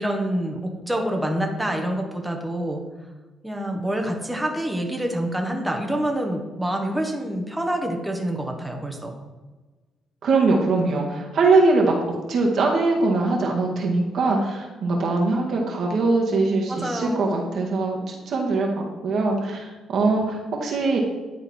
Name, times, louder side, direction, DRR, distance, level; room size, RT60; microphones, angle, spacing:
voice 1, 0.0-2.8 3.4-9.1 16.7-17.5, right 1 dB, 5° right, 1 dB, 1.2 m, -27 dB
voice 2, 10.2-21.0, right 3 dB, 65° right, 0 dB, 1.6 m, -22 dB
10.5 x 3.9 x 4.3 m, 1.3 s
cardioid pair, 90°, 0 cm